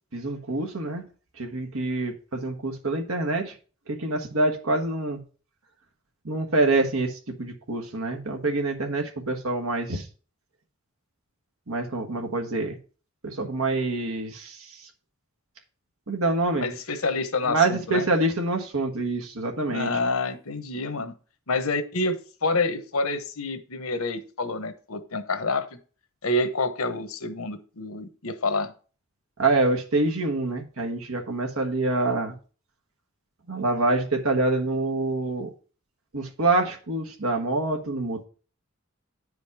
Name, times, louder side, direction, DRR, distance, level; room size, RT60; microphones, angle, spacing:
voice 1, 0.1-1.0 1.4-3.5 3.9-5.2 6.2-10.1 11.7-12.8 13.2-14.8 16.1-16.7 17.5-19.9 29.4-32.3 33.5-35.5 36.1-38.3, right 2 dB, 85° right, 3 dB, 1.3 m, -26 dB
voice 2, 16.6-18.1 19.7-21.1 21.5-25.7 26.2-28.7, left 3 dB, 80° left, 9 dB, 1.1 m, -28 dB
9.6 x 5.2 x 4.8 m, 0.38 s
head